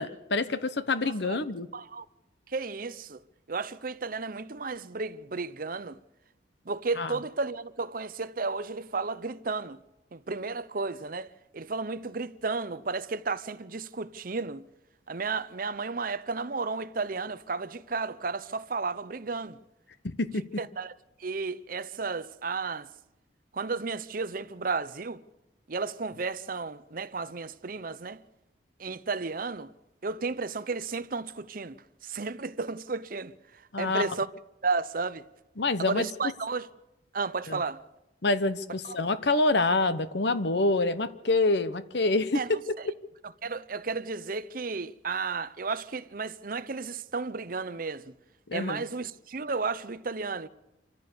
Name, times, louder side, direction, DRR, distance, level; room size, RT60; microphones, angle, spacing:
voice 1, 0.0-1.7 7.0-7.1 20.0-20.5 33.7-34.1 35.6-36.1 37.5-37.6 38.2-42.6 48.5-48.9, left 2 dB, 65° left, 1.0 m, -26 dB
voice 2, 1.0-1.4 1.7-2.0 2.5-3.2 3.5-6.0 6.6-9.8 10.1-14.7 15.1-19.6 20.6-20.9 21.2-22.9 23.5-25.2 25.7-28.2 28.8-29.7 30.0-34.3 34.6-35.2 35.8-36.7 37.1-37.8 38.8-39.0 42.3-42.9 43.4-48.1 48.5-50.5, right 4 dB, 50° right, 0.8 m, -33 dB
27.0 x 14.5 x 6.9 m
head